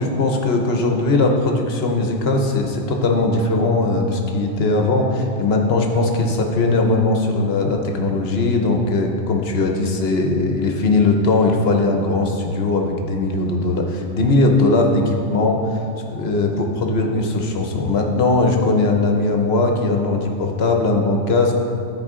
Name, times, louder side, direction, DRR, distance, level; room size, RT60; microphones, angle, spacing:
voice 1, 0.0-15.6 16.1-21.5, left 2 dB, 60° left, 2 dB, 1.0 m, -19 dB
13.5 x 4.7 x 3.7 m, 2.6 s
omnidirectional pair, 1.2 m